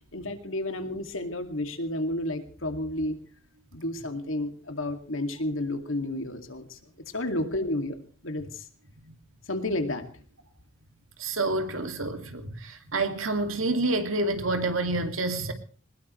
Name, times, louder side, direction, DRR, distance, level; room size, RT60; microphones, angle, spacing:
voice 1, 0.1-3.2 3.7-6.8 7.1-8.0 8.2-8.6 9.5-10.1, left 1 dB, 75° left, 2.4 m, -31 dB
voice 2, 11.2-15.5, right 2 dB, 80° right, 2.4 m, -28 dB
21.0 x 20.0 x 3.2 m
head